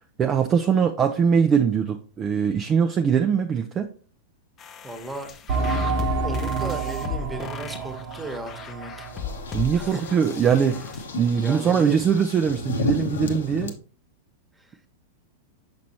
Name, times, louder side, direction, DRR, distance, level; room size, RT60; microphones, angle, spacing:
voice 1, 0.2-3.9 9.5-13.7, right 7 dB, 25° right, 0.5 m, -22 dB
sound 1, 4.6-11.0, left 6 dB, 30° left, 0.7 m, -37 dB
voice 2, 4.8-5.3 6.2-9.1 9.7-10.1 11.3-12.0 14.5-14.8, right 2 dB, 10° right, 1.2 m, -35 dB
sound 2, 5.5-9.8 10.1-10.2 10.8-10.9, right 3 dB, 50° right, 1.0 m, -28 dB
sound 3, 9.1-13.7, left 4 dB, 70° left, 0.8 m, -33 dB
6.1 x 6.0 x 2.9 m
figure-of-eight pair, 95°, 0 cm